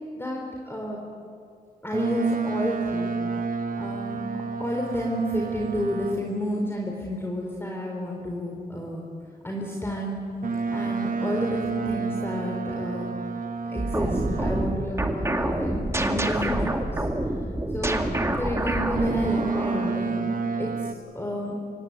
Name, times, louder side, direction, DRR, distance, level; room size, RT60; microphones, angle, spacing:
voice 1, 0.2-1.0 1.8-3.1 3.8-4.2 4.6-9.1 9.4-10.2 10.6-13.1 13.7-17.0 17.7-20.2 20.6-21.5, equal, 15° left, -1 dB, 4.0 m, -30 dB
Boat Water vehicle, 1.9-6.4 10.4-14.9 18.9-20.9, right 4 dB, 55° right, 1.5 m, -30 dB
sound 1, 13.8-20.0, right 1 dB, 15° right, 2.2 m, -27 dB
26.0 x 16.5 x 9.7 m, 2.5 s
cardioid pair, 75°, 17 cm